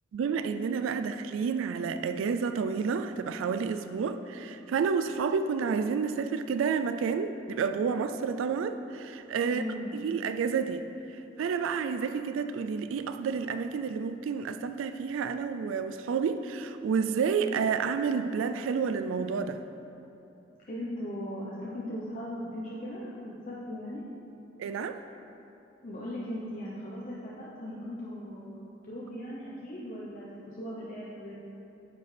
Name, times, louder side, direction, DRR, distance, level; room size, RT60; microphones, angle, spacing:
voice 1, 0.1-9.6 9.9-19.6 24.6-25.0, right 6 dB, 80° right, 10 dB, 0.3 m, -30 dB
voice 2, 9.4-9.9 20.7-24.0 25.8-31.4, equal, 40° left, -6 dB, 0.8 m, -38 dB
9.1 x 6.9 x 3.3 m, 2.9 s
head